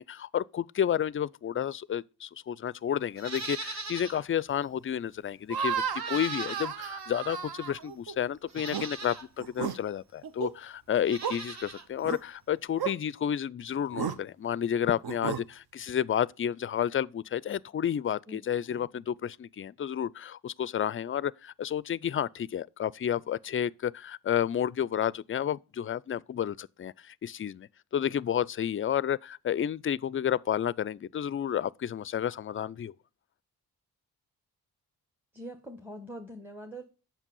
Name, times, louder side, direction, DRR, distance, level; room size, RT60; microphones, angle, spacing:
voice 1, 0.0-5.8 6.1-32.9, left 9 dB, 35° left, 0.4 m, -31 dB
Livestock farm animals working animals, 3.1-4.2 4.6-4.7 5.9-7.0 7.8-7.9 8.5-9.3 10.9-11.9 12.1-12.2, right 3 dB, 40° right, 1.1 m, -40 dB
sound 1, 5.5-8.1 8.6-8.9 9.4-9.8 10.2-10.5 11.2-11.4 12.0-12.2 12.8-12.9 13.9-14.2 15.0-15.4, right 7 dB, 60° right, 0.8 m, -33 dB
voice 2, 18.3-19.0 35.3-36.8, equal, 5° right, 1.3 m, -44 dB
7.2 x 5.5 x 5.4 m
supercardioid pair, 45°, 41 cm